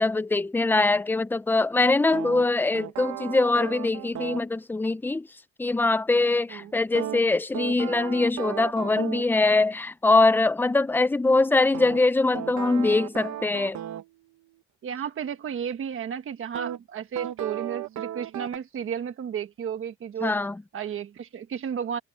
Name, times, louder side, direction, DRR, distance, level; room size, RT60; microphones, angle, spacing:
voice 1, 0.0-5.3 5.6-13.8 20.2-20.6, left 3 dB, 5° left, 0.6 m, -23 dB
sound 1, 2.1-4.5 7.0-9.3 11.7-14.1 16.6-16.8 17.2-18.6, right 12 dB, 70° right, 1.4 m, -35 dB
voice 2, 14.8-20.3 20.7-22.0, right 8 dB, 45° right, 1.4 m, -33 dB
cardioid pair, 155°, 29 cm